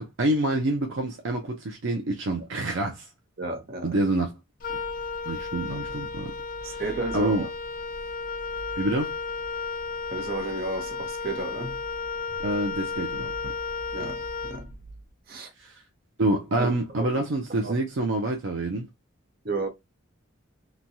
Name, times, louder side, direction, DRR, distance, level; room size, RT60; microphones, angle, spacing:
voice 1, 0.0-3.1 3.8-4.3 4.7-4.8 5.3-6.3 6.6-6.8 7.1-7.4 8.8-9.1 12.4-13.3 15.6-15.8 16.2-18.9, right 2 dB, 70° right, 0.6 m, -27 dB
voice 2, 3.4-4.0 6.6-7.5 10.1-11.8 13.9-14.7 15.3-15.5 16.6-17.2 17.6-17.7 19.4-19.7, right 3 dB, 50° right, 0.9 m, -33 dB
Wind instrument woodwind instrument, 4.6-15.0, left 4 dB, 45° left, 0.5 m, -33 dB
3.0 x 2.3 x 2.6 m
head